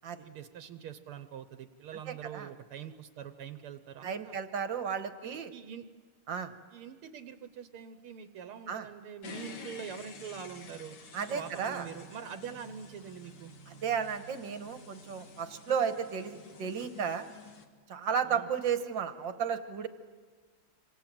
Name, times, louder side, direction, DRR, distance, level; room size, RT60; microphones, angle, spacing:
voice 1, 0.2-4.4 5.5-5.9 6.7-11.0 11.3-13.5 18.3-18.5, right 8 dB, 80° right, 10 dB, 1.8 m, -44 dB
voice 2, 2.1-2.5 4.0-5.5 6.3-6.5 8.7-8.9 11.1-11.9 13.7-17.3 17.9-19.9, right 7 dB, 60° right, 9 dB, 1.8 m, -33 dB
sound 1, 9.2-17.6, left 4 dB, 90° left, 2.8 m, -50 dB
26.5 x 26.0 x 7.6 m, 1.5 s
omnidirectional pair, 2.4 m